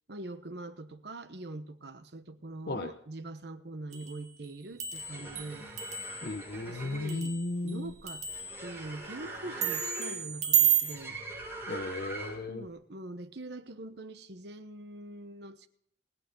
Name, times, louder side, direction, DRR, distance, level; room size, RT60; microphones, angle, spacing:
voice 1, 0.1-5.7 6.5-7.3 7.6-8.2 8.6-11.2 12.5-15.7, right 2 dB, 65° right, 1.1 m, -43 dB
sound 1, 3.9-4.2 4.5-7.8 8.1-8.8 9.6-11.0, right 9 dB, 40° right, 1.9 m, -31 dB
sound 2, 4.8-12.6, right 2 dB, 10° right, 6.9 m, -43 dB
voice 2, 6.2-7.9 11.7-12.7, left 2 dB, 60° left, 0.8 m, -35 dB
20.0 x 9.3 x 3.9 m
head